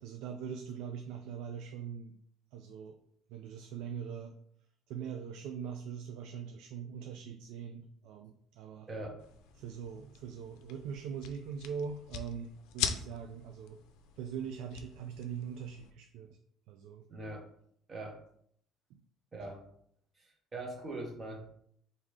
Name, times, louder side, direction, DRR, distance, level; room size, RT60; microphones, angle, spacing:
voice 1, 0.0-2.2 2.5-3.0 3.3-4.3 4.9-8.9 9.6-13.8 14.2-16.4 16.7-17.1 18.9-19.0, right 7 dB, 70° right, 5 dB, 0.4 m, -42 dB
voice 2, 8.9-9.2 17.1-17.4 17.9-18.2 19.3-19.6 20.2-21.4, right 2 dB, 20° right, 1 dB, 0.9 m, -41 dB
sound 1, 9.2-15.9, left 8 dB, 90° left, 0.5 m, -42 dB
3.6 x 2.7 x 4.7 m, 0.67 s
cardioid pair, 175°, 0 cm